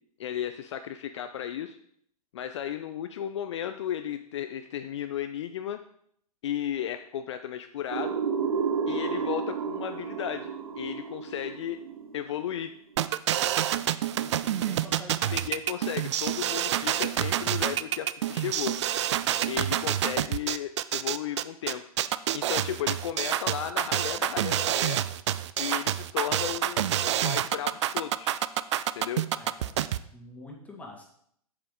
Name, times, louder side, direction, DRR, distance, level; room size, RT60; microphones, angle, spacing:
voice 1, 0.2-1.8 2.3-5.8 6.4-8.2 8.9-11.8 12.1-12.7 15.3-18.8 19.5-21.8 22.3-25.0 25.6-28.3 29.0-29.2, left 10 dB, 50° left, 9 dB, 0.4 m, -34 dB
sound 1, 7.9-12.6, right 6 dB, 65° right, 0.8 m, -31 dB
sound 2, 13.0-30.0, right 11 dB, 50° right, 0.4 m, -27 dB
voice 2, 14.2-15.5 29.4-29.8 30.1-31.0, left 1 dB, 5° left, 0 dB, 1.7 m, -46 dB
7.7 x 7.6 x 3.7 m, 0.68 s
figure-of-eight pair, 105°, 19 cm